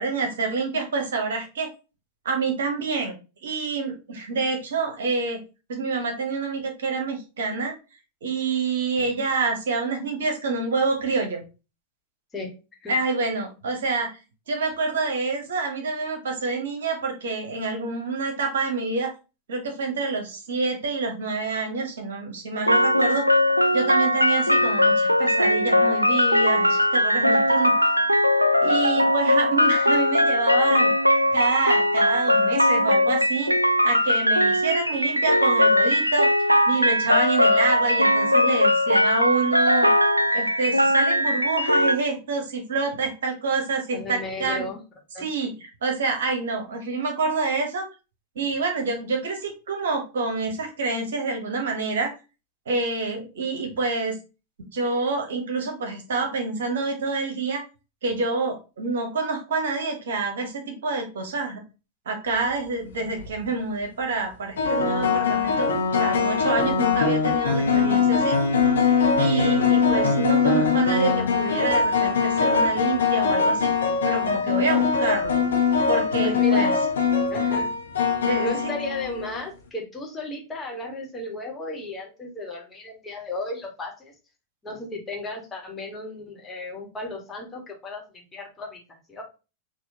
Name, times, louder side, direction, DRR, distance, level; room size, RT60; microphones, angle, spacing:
voice 1, 0.0-1.7 2.2-3.1 3.4-5.4 5.7-7.7 8.2-11.4 12.9-14.2 14.5-19.1 19.5-23.2 23.7-27.7 28.6-30.9 31.3-33.5 33.8-36.3 36.7-39.9 40.3-44.7 45.2-47.9 48.3-52.1 52.7-54.2 54.7-57.6 58.0-61.6 62.1-68.4 69.0-73.7 74.0-75.4 75.9-76.7 78.2-78.7, right 3 dB, 60° right, 4 dB, 1.1 m, -27 dB
sound 1, 22.7-41.9, left 1 dB, 90° right, 0.3 m, -20 dB
voice 2, 43.9-44.8 45.1-45.3 76.2-76.8 77.3-77.7 78.4-84.1 84.6-88.8 89.1-89.2, left 2 dB, 15° left, 0 dB, 1.6 m, -34 dB
sound 2, 63.0-63.3 64.6-79.4, left 5 dB, 65° left, 0.9 m, -22 dB
6.1 x 2.6 x 2.8 m, 0.30 s
figure-of-eight pair, 90°, 0 cm